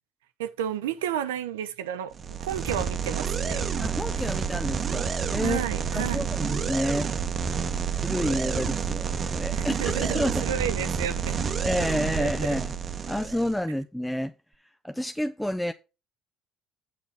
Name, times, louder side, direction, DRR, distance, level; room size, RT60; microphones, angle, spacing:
voice 1, 0.4-3.6 5.4-6.3 9.5-11.4 12.2-12.5, right 10 dB, 80° right, 0.7 m, -32 dB
sound 1, 2.1-13.6, right 6 dB, 40° right, 1.0 m, -29 dB
voice 2, 3.8-5.6 5.9-7.1 8.0-10.5 11.6-12.7 13.1-14.3 14.8-15.7, equal, 5° left, 0.6 m, -29 dB
8.5 x 5.9 x 4.8 m
hypercardioid pair, 60°, 0 cm